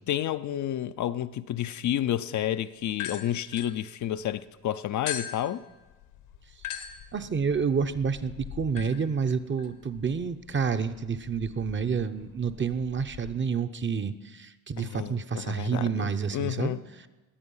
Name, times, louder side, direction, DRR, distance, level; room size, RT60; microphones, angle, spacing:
voice 1, 0.1-5.6 14.8-16.1 16.3-16.8, left 11 dB, 50° left, 0.6 m, -30 dB
sound 1, 3.0-4.4 5.1-13.3, left 10 dB, 75° left, 1.4 m, -42 dB
voice 2, 7.1-16.8, right 6 dB, 30° right, 0.9 m, -29 dB
21.0 x 8.1 x 5.6 m
supercardioid pair, 65°, 38 cm